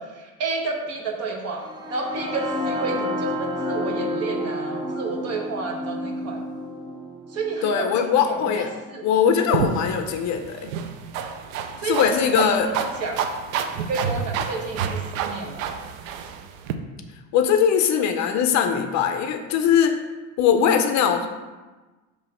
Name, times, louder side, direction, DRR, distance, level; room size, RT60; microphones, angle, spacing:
voice 1, 0.0-6.4 7.3-9.1 9.8-9.9 11.8-13.2 13.8-15.7, right 3 dB, 40° right, 2 dB, 1.1 m, -31 dB
sound 1, 1.6-9.5, left 1 dB, 10° right, 0.5 m, -30 dB
voice 2, 7.6-8.7 9.0-10.7 11.9-12.7 17.3-19.9 20.4-21.3, left 7 dB, 45° left, 7 dB, 0.6 m, -20 dB
sound 2, 9.5-16.7, right 7 dB, 85° right, 0.6 m, -29 dB
6.1 x 3.1 x 5.4 m, 1.2 s
supercardioid pair, 125°, 39 cm